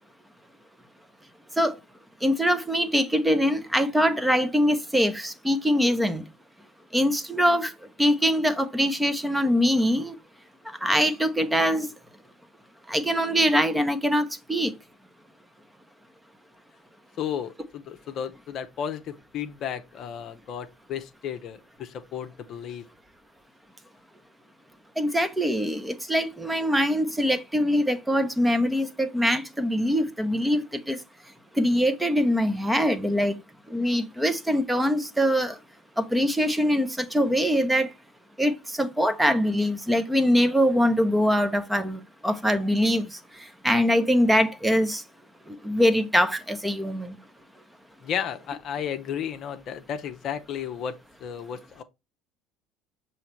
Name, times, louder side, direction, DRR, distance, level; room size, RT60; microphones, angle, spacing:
voice 1, 2.2-6.2 6.9-7.7 8.0-10.1 10.8-11.9 12.9-14.7 25.0-31.0 31.6-33.4 33.7-35.6 36.0-37.9 38.4-43.2 43.6-45.0 45.5-47.1, equal, 5° right, 0.9 m, -23 dB
voice 2, 17.2-22.8 48.0-51.0 51.2-51.8, left 8 dB, 50° left, 0.7 m, -33 dB
6.9 x 3.2 x 4.5 m
figure-of-eight pair, 65°, 0 cm